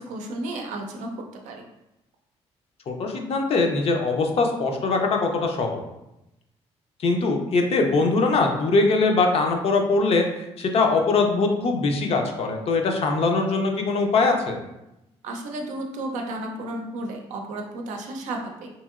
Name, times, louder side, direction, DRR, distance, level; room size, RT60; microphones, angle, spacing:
voice 1, 0.0-1.6 15.2-18.7, right 1 dB, 85° right, 2 dB, 0.5 m, -33 dB
voice 2, 2.9-5.8 7.0-14.6, left 3 dB, 55° left, 3 dB, 0.5 m, -22 dB
2.9 x 2.7 x 2.4 m, 0.91 s
cardioid pair, 85°, 12 cm